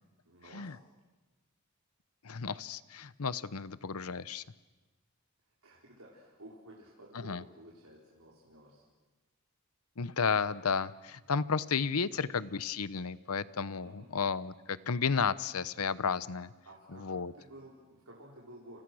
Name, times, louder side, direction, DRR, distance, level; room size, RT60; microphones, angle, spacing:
voice 1, 0.2-0.8 5.6-8.8 13.8-14.1 16.6-18.8, right 1 dB, 85° right, -4 dB, 4.7 m, -53 dB
voice 2, 2.2-4.4 7.1-7.4 10.0-16.5 17.0-17.3, left 5 dB, 80° left, 17 dB, 0.8 m, -33 dB
30.0 x 29.0 x 6.4 m, 1.2 s
head